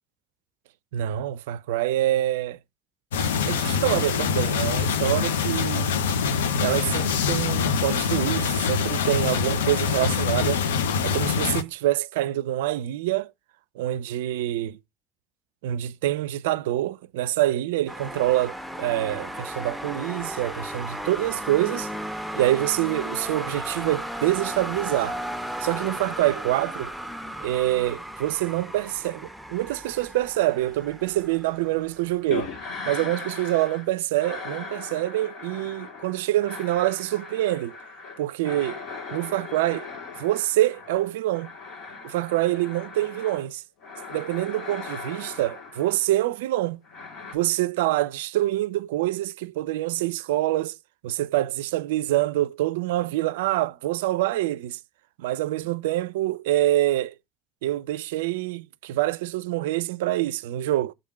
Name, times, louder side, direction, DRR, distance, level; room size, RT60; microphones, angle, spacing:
voice 1, 0.9-2.6 3.5-5.9 6.6-10.6 11.0-13.3 13.8-14.8 15.6-21.9 22.3-25.2 25.6-26.9 27.4-32.5 32.8-37.8 38.2-38.8 39.1-39.9 40.2-41.5 42.0-43.6 44.1-46.8 47.3-50.8 51.0-54.8 55.2-57.1 57.6-60.9, right 15 dB, 80° right, 0.3 m, -26 dB
sound 1, 3.1-11.6, left 6 dB, 85° left, 0.5 m, -24 dB
sound 2, 17.9-32.7, equal, 5° left, 1.1 m, -35 dB
sound 3, 32.3-33.9 34.1-43.5 43.8-46.1 46.8-47.3, left 4 dB, 65° left, 2.6 m, -38 dB
6.7 x 3.6 x 5.6 m
hypercardioid pair, 65°, 0 cm